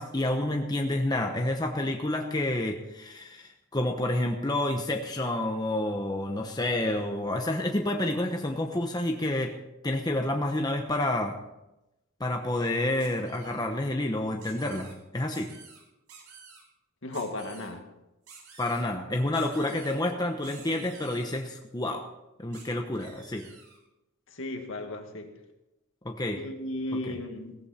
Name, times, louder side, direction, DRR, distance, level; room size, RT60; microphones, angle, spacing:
voice 1, 0.0-9.5 9.8-11.4 12.2-15.5 18.6-22.0 22.4-23.5 26.0-26.4 27.1-27.2, left 1 dB, 20° left, 3 dB, 1.0 m, -29 dB
sound 1, 13.0-13.6 14.4-14.9 15.3-15.8 16.1-16.6 17.1-17.7 18.3-18.9 19.3-20.0 20.4-21.4 22.5-22.6 23.0-23.8, right 5 dB, 90° right, 5.7 m, -50 dB
voice 2, 17.0-17.8 24.4-25.3 26.3-27.6, left 1 dB, 60° left, 4 dB, 2.1 m, -35 dB
17.5 x 14.5 x 4.3 m, 0.94 s
head